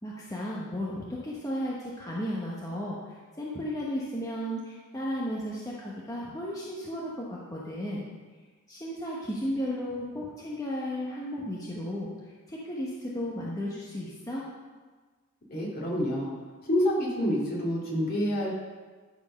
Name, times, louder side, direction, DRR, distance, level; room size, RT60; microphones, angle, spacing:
voice 1, 0.0-8.1 8.7-14.5, equal, 15° left, -5 dB, 1.1 m, -34 dB
voice 2, 15.5-16.3 16.7-18.5, equal, 45° left, -5 dB, 2.7 m, -27 dB
11.5 x 4.6 x 6.3 m, 1.4 s
head